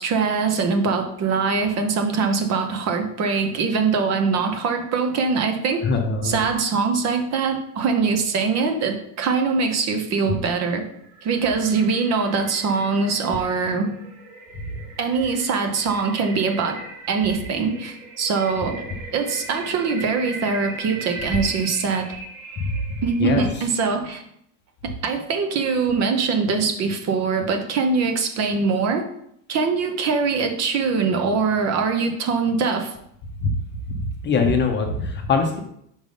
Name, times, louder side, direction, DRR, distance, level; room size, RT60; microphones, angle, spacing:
voice 1, 0.0-5.9 6.2-10.8 11.2-13.9 15.0-16.8 17.1-18.8 19.1-22.1 23.0-24.2 24.8-29.1 29.5-32.9, right 4 dB, 40° right, 5 dB, 0.8 m, -22 dB
voice 2, 5.8-6.4 22.6-22.7 23.2-23.4 33.4-33.5 33.9-35.6, left 4 dB, 25° left, 3 dB, 0.7 m, -22 dB
sound 1, 10.9-23.9, right 3 dB, 65° right, 1.5 m, -39 dB
5.4 x 3.4 x 5.2 m, 0.73 s
cardioid pair, 145°, 41 cm